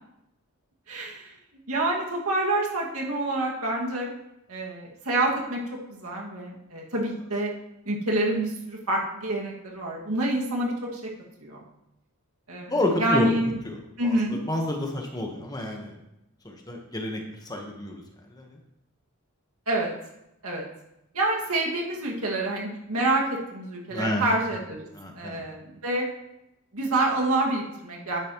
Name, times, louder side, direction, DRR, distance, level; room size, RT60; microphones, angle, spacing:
voice 1, 0.9-1.3 1.7-4.1 4.5-5.6 5.9-7.5 7.9-11.0 11.4-11.6 12.5-12.7 13.0-13.6 14.0-14.4 19.7-19.9 20.4-20.6 21.1-24.9 25.2-26.1 26.7-28.2, right 2 dB, 80° right, -2 dB, 2.1 m, -27 dB
voice 2, 12.6-13.4 13.6-16.0 16.4-18.0 18.3-18.6 23.9-24.3 24.9-25.4, left 1 dB, 15° left, 1 dB, 1.2 m, -30 dB
10.5 x 9.1 x 3.1 m, 0.87 s
head